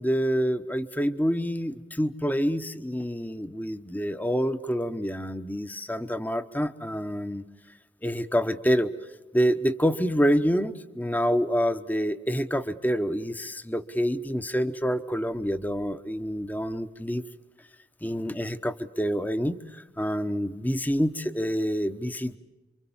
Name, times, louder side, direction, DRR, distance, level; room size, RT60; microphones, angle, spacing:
voice 1, 0.0-7.4 8.0-8.9 9.3-17.2 18.0-19.6 20.0-22.4, equal, 10° left, 11 dB, 0.9 m, -27 dB
28.5 x 25.0 x 7.2 m, 1.1 s
head